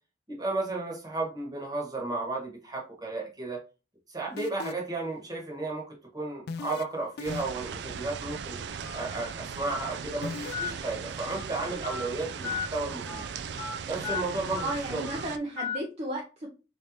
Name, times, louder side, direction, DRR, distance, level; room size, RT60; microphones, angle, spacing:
voice 1, 0.3-3.6 4.1-8.6 8.9-13.2 13.9-15.1, right 2 dB, 20° right, -1 dB, 1.3 m, -33 dB
sound 1, 4.4-5.0 6.5-6.8 7.2-7.7 10.2-10.5, left 5 dB, 65° left, 0.3 m, -36 dB
sound 2, 7.2-15.4, right 6 dB, 75° right, 0.4 m, -38 dB
Telephone, 8.8-9.0 9.7-9.9 10.5-10.7 11.2-11.4 11.8-12.0 12.4-12.7 13.1-13.2 13.6-13.7 14.0-14.2 14.6-14.7 15.0-15.2 15.6-15.8, left 6 dB, 20° left, 1.5 m, -34 dB
voice 2, 14.6-16.5, right 1 dB, 40° right, -1 dB, 0.7 m, -34 dB
4.2 x 3.3 x 2.7 m, 0.32 s
head